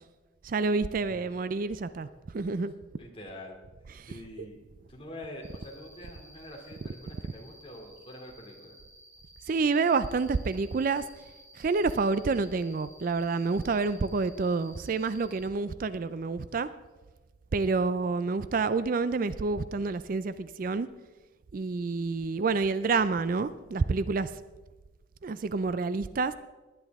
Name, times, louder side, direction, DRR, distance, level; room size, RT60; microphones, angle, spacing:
voice 1, 0.4-2.1 2.3-2.7 4.0-4.1 4.4-4.5 9.5-11.0 11.6-16.7 17.5-20.9 21.5-24.3 25.2-26.3, right 4 dB, 45° right, 14 dB, 0.4 m, -28 dB
voice 2, 3.0-3.6 4.1-4.6 4.9-8.8, left 1 dB, 30° left, 0 dB, 2.5 m, -45 dB
Cricket, 5.4-15.4, equal, 10° right, 2.0 m, -55 dB
19.5 x 10.0 x 3.6 m, 1.2 s
head